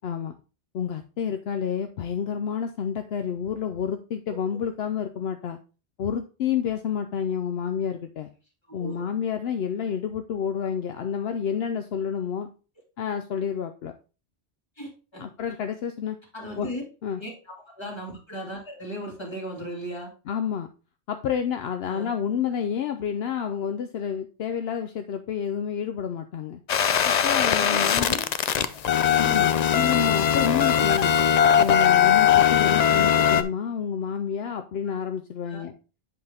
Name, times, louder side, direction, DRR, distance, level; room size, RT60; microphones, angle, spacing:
voice 1, 0.0-0.4 0.7-5.6 6.0-8.3 8.7-12.5 13.0-13.9 15.2-16.2 16.6-16.7 17.0-17.2 20.3-20.7 21.1-26.6 27.0-28.1 29.2-31.2 31.6-35.7, left 7 dB, 70° left, 8 dB, 0.8 m, -29 dB
voice 2, 8.7-9.1 14.8-15.2 16.3-16.8 17.2-20.1 21.9-22.1 27.6-28.3 28.6-28.7 35.5-35.7, equal, 25° left, 0 dB, 2.0 m, -36 dB
sound 1, 26.7-33.4, left 9 dB, 55° left, 0.5 m, -20 dB
7.9 x 5.6 x 3.4 m, 0.33 s
omnidirectional pair, 1.1 m